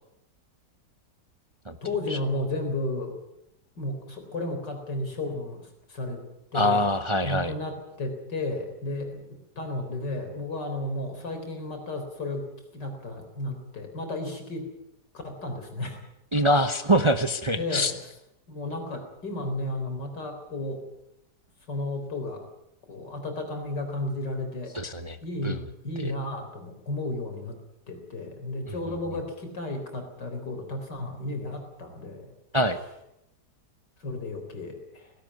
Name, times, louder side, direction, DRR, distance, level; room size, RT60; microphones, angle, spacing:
voice 1, 1.8-3.2 3.8-6.2 6.5-6.8 7.2-14.7 15.1-16.0 17.5-18.0 18.5-20.8 21.7-22.4 22.9-24.8 25.2-27.6 27.9-32.3 34.0-35.1, left 2 dB, 85° left, 5 dB, 4.6 m, -33 dB
voice 2, 6.5-7.5 16.3-17.9 24.7-25.2 25.4-25.6 26.0-26.1 28.7-28.8 32.5-32.8, equal, 25° right, 9 dB, 0.7 m, -24 dB
18.0 x 17.0 x 9.5 m, 0.86 s
omnidirectional pair, 1.8 m